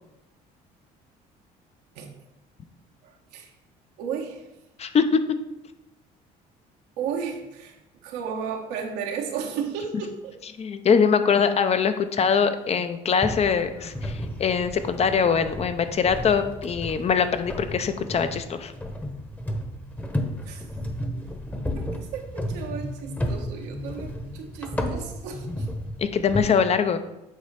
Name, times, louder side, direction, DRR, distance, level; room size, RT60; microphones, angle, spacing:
voice 1, 3.0-3.5 4.0-4.5 7.0-7.8 8.0-10.4 20.4-20.7 21.7-25.7, right 7 dB, 90° right, 2 dB, 1.3 m, -34 dB
voice 2, 4.8-5.2 10.6-18.7 26.0-27.0, left 6 dB, 40° left, 10 dB, 0.6 m, -22 dB
sound 1, 13.2-26.5, equal, 10° left, 1.0 m, -33 dB
8.3 x 3.2 x 5.8 m, 0.91 s
cardioid pair, 95°, 17 cm